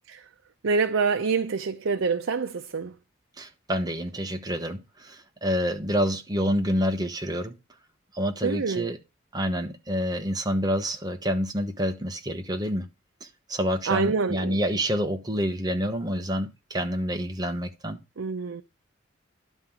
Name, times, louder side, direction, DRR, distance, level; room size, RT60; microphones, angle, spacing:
voice 1, 0.6-2.9 8.4-8.9 13.9-14.6 18.2-18.6, right 4 dB, 80° right, 0.6 m, -26 dB
voice 2, 3.4-7.6 8.1-9.0 9.3-12.9 13.2-18.0, equal, 20° right, 1.2 m, -28 dB
11.5 x 3.9 x 7.2 m
head